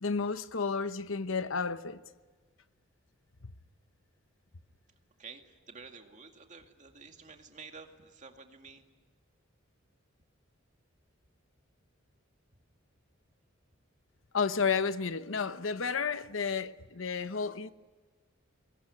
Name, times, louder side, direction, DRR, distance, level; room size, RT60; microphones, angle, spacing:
voice 1, 0.0-2.0 3.4-3.5 14.3-17.7, left 5 dB, 75° left, 1.0 m, -32 dB
voice 2, 5.2-8.9, right 5 dB, 40° right, 2.4 m, -50 dB
25.0 x 20.5 x 9.9 m
head